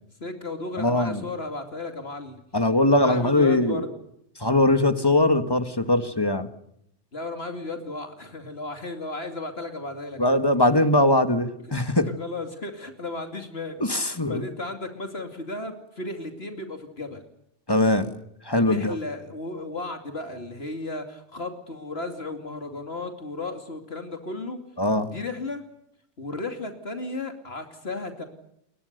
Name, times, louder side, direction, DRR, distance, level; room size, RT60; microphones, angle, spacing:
voice 1, 0.2-2.4 2.9-3.9 7.1-10.4 12.0-13.9 14.3-17.2 18.7-24.6 25.1-25.7 26.2-28.2, left 2 dB, 65° left, 6 dB, 2.9 m, -34 dB
voice 2, 0.8-1.2 2.5-3.9 4.4-6.5 10.2-12.1 13.8-14.4 17.7-18.1 18.4-19.0 24.8-25.1, left 1 dB, 20° left, 9 dB, 1.8 m, -21 dB
28.5 x 22.5 x 6.7 m, 0.78 s
omnidirectional pair, 1.1 m